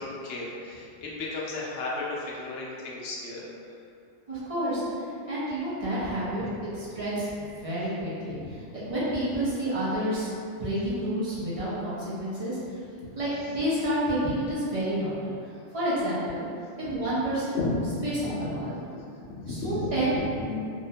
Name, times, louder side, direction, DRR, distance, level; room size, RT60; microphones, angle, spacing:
voice 1, 0.0-3.4 6.4-6.5 8.3-8.6 8.8-8.9 13.0-13.1 16.8-16.9 17.5-18.6 18.9-19.0 19.3-20.5, left 2 dB, 65° left, -4 dB, 0.7 m, -34 dB
voice 2, 4.3-6.4 6.7-8.4 8.7-10.3 10.6-12.6 13.2-15.3 15.7-16.5 16.8-17.6 18.0-18.7 19.5-20.5, right 1 dB, 40° right, -10 dB, 0.5 m, -29 dB
2.7 x 2.0 x 2.7 m, 2.5 s
omnidirectional pair, 1.2 m